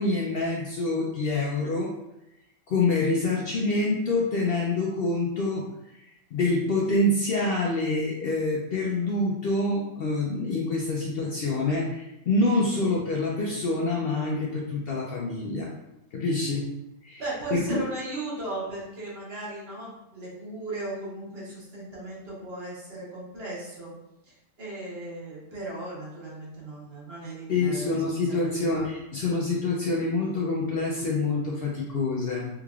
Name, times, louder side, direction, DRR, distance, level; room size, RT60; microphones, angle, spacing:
voice 1, 0.0-1.9 2.7-5.6 6.3-15.7 16.1-16.7 17.0-17.2 17.5-17.8 27.5-32.5, left 2 dB, 65° left, -2 dB, 0.6 m, -26 dB
voice 2, 17.2-23.9 24.3-28.9, right 2 dB, 50° right, -6 dB, 1.3 m, -37 dB
3.6 x 3.2 x 2.4 m, 0.88 s
omnidirectional pair, 1.3 m